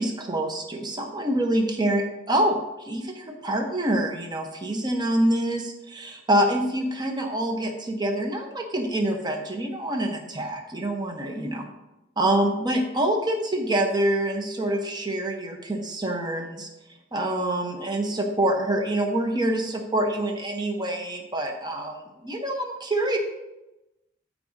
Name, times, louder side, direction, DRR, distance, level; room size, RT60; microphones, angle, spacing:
voice 1, 0.0-11.6 12.2-16.7 17.1-23.2, right 1 dB, 20° right, 3 dB, 0.9 m, -26 dB
13.5 x 4.8 x 2.7 m, 0.97 s
head